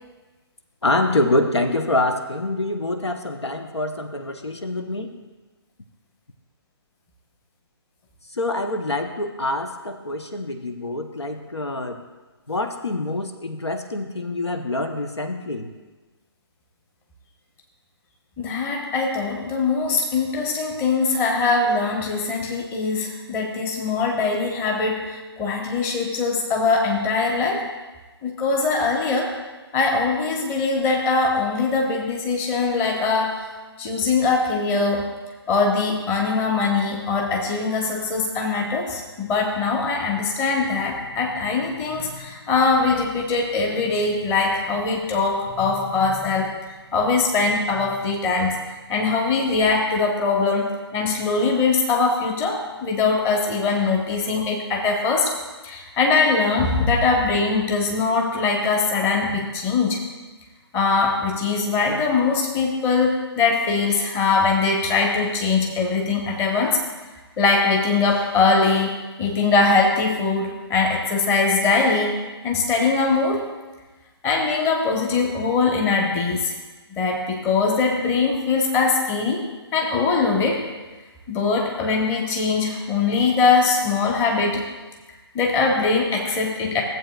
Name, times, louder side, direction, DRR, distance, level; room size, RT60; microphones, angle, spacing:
voice 1, 0.8-5.2 8.3-12.0 12.5-15.7, left 2 dB, 80° left, 6 dB, 0.8 m, -25 dB
voice 2, 18.4-27.6 28.2-29.3 29.7-33.5 33.8-35.1 35.5-46.5 46.9-48.6 48.9-55.3 55.6-60.0 60.7-66.8 67.4-72.2 72.4-73.4 74.2-76.5 77.0-79.4 79.7-80.6 81.3-84.6 85.3-86.8, left 4 dB, 15° left, 0 dB, 1.1 m, -22 dB
16.0 x 7.8 x 2.4 m, 1.2 s
figure-of-eight pair, 135°, 14 cm